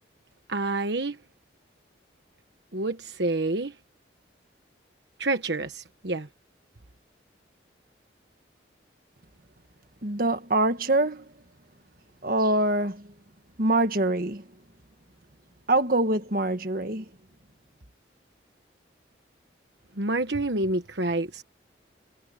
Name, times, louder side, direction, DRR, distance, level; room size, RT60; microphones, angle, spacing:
voice 1, 0.5-1.2 2.7-3.8 5.2-6.3 20.0-21.4, right 2 dB, 65° right, 1.3 m, -28 dB
voice 2, 10.0-11.3 12.2-13.0 13.6-14.4 15.7-17.1, right 2 dB, 50° right, 1.8 m, -24 dB
head